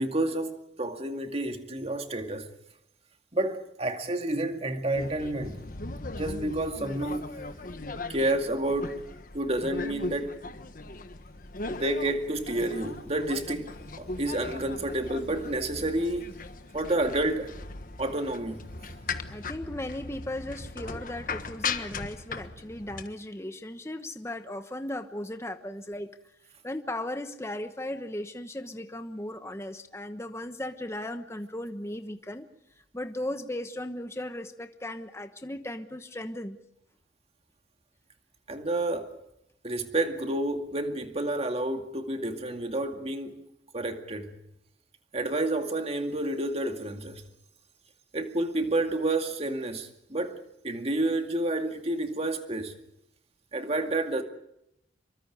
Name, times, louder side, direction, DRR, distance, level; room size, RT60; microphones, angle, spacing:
voice 1, 0.0-2.5 3.3-5.6 6.1-7.3 8.1-9.0 9.3-10.4 11.7-16.3 16.7-17.5 18.0-18.7 38.5-39.2 39.6-43.3 43.7-44.3 45.1-47.2 48.1-50.4 50.6-52.7 53.5-54.2, right 1 dB, 35° right, 2.3 m, -29 dB
sound 1, 4.9-23.1, left 3 dB, 50° left, 1.4 m, -38 dB
voice 2, 19.3-26.1 26.6-32.5 32.9-36.6, left 1 dB, 15° left, 1.1 m, -36 dB
27.0 x 23.5 x 5.0 m
head